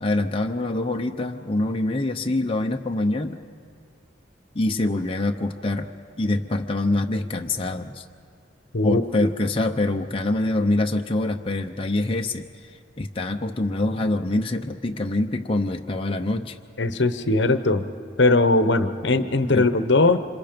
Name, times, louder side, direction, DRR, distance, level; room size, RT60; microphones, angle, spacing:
voice 1, 0.0-3.4 4.5-5.9 6.2-8.0 8.8-12.7 13.0-16.6 19.5-19.7, left 2 dB, 30° left, 3 dB, 0.8 m, -25 dB
voice 2, 8.7-9.3 16.8-17.8 18.2-20.2, left 2 dB, 65° left, 10 dB, 1.0 m, -20 dB
28.0 x 26.5 x 5.2 m, 2.3 s
head